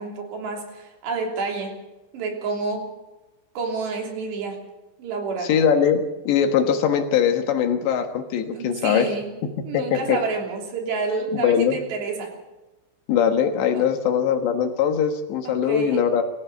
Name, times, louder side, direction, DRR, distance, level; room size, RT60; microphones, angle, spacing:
voice 1, 0.0-1.8 2.1-2.9 3.6-4.6 5.0-5.6 8.5-9.3 9.6-12.3 13.7-13.9 15.5-16.0, right 4 dB, 65° right, 1 dB, 5.2 m, -29 dB
voice 2, 5.5-9.1 9.7-10.2 11.3-11.8 13.1-16.2, left 8 dB, 70° left, 6 dB, 3.5 m, -21 dB
24.0 x 16.0 x 6.8 m, 1.1 s
omnidirectional pair, 5.5 m